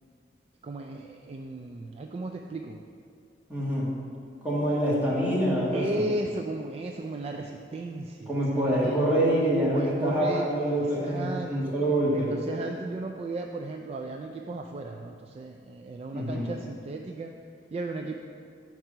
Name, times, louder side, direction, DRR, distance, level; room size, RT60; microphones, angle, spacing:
voice 1, 0.6-2.8 5.7-9.1 9.7-11.7 12.1-17.3 17.7-18.2, right 2 dB, 35° right, 3 dB, 0.3 m, -35 dB
voice 2, 3.5-3.9 4.4-6.0 8.3-12.3 16.1-16.5, right 1 dB, 10° right, -7 dB, 1.6 m, -26 dB
6.0 x 4.7 x 6.6 m, 2.4 s
head